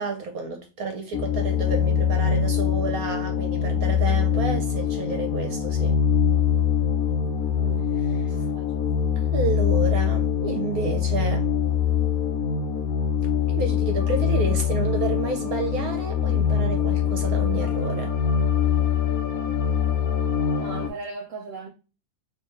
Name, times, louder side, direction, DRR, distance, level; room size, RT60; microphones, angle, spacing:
voice 1, 0.0-6.0 8.0-8.5 9.2-11.5 13.5-18.1, right 4 dB, 65° right, 1.0 m, -30 dB
sound 1, 1.1-20.9, left 8 dB, 70° left, 0.8 m, -23 dB
voice 2, 7.6-7.9 8.3-8.7 9.0-9.3 20.5-21.7, right 3 dB, 85° right, 0.6 m, -39 dB
3.4 x 3.0 x 3.1 m
omnidirectional pair, 2.1 m